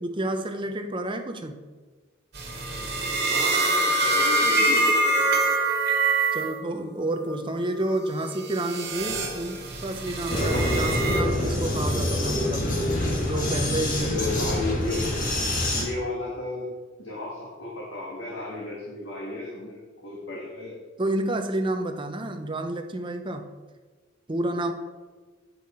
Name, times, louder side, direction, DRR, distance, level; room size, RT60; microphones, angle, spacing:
voice 1, 0.0-1.6 6.3-12.7 13.1-14.3 21.0-23.5 24.3-24.7, right 1 dB, 25° right, 6 dB, 0.6 m, -30 dB
sound 1, 2.3-6.6 7.0-7.4 8.0-11.2, right 2 dB, 50° right, 1.7 m, -25 dB
voice 2, 3.3-5.4 14.0-15.1 15.7-16.7 17.0-20.8, left 2 dB, 70° left, -4 dB, 1.6 m, -33 dB
Vehicle, 10.3-15.8, left 1 dB, 40° left, 1.5 m, -26 dB
9.3 x 5.5 x 4.3 m, 1.4 s
head